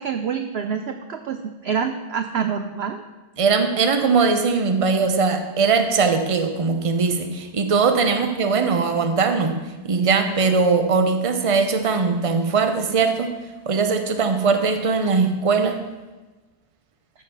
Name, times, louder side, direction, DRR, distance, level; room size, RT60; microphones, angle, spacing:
voice 1, 0.0-3.0, right 7 dB, 65° right, 7 dB, 0.6 m, -27 dB
voice 2, 3.4-9.5 9.8-13.3 13.6-15.8, right 4 dB, 30° right, 7 dB, 0.7 m, -20 dB
13.5 x 5.3 x 5.9 m, 1.2 s
omnidirectional pair, 1.7 m